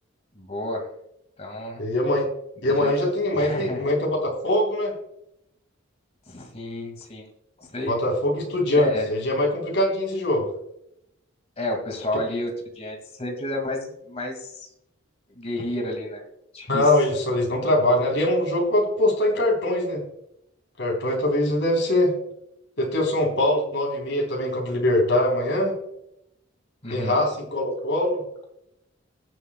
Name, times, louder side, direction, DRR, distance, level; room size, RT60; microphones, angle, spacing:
voice 1, 0.4-0.9 1.4-1.8 2.7-2.9 3.3-3.9 6.3-7.3 7.6-7.9 8.8-9.1 11.6-14.7 15.4-16.2 16.5-16.9 26.8-27.2, left 1 dB, 35° left, 2 dB, 2.0 m, -31 dB
voice 2, 1.8-2.3 2.6-4.9 7.9-10.4 16.7-20.0 20.8-22.1 22.8-25.8 26.9-28.2, left 1 dB, 65° left, -1 dB, 3.5 m, -22 dB
20.0 x 8.0 x 2.2 m, 0.78 s
head